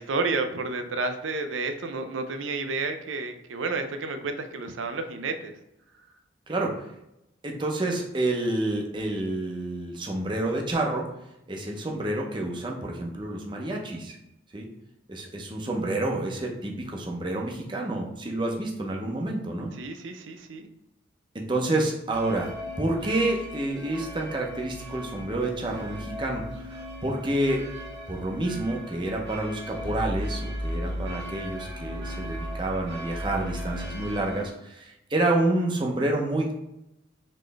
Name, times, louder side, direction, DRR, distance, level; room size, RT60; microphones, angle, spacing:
voice 1, 0.0-5.5 19.8-20.7, right 3 dB, 90° right, 7 dB, 0.5 m, -31 dB
voice 2, 7.4-11.1 11.5-14.2 14.5-14.7 15.1-19.8 21.3-22.5 22.8-27.6 28.1-36.6, right 2 dB, 25° right, 0 dB, 0.7 m, -29 dB
sound 1, 22.1-34.5, equal, 65° right, 1.1 m, -36 dB
4.2 x 3.1 x 3.3 m, 0.84 s
head